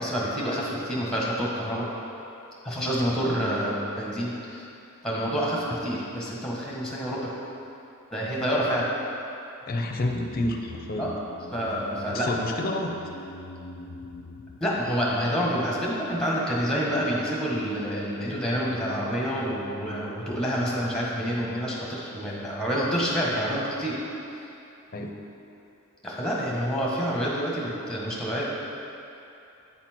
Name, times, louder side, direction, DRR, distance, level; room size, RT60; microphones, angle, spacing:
voice 1, 0.0-1.9 2.6-4.6 5.0-7.3 8.1-8.9 11.0-11.1 11.5-12.3 14.6-24.0 26.0-28.5, equal, 5° left, -5 dB, 1.3 m, -28 dB
voice 2, 9.7-11.1 12.1-12.9 24.9-25.1, left 1 dB, 45° left, 2 dB, 0.6 m, -29 dB
sound 1, 9.8-16.2 16.5-16.6, left 3 dB, 90° left, 0.5 m, -45 dB
8.7 x 4.3 x 4.4 m, 2.8 s
head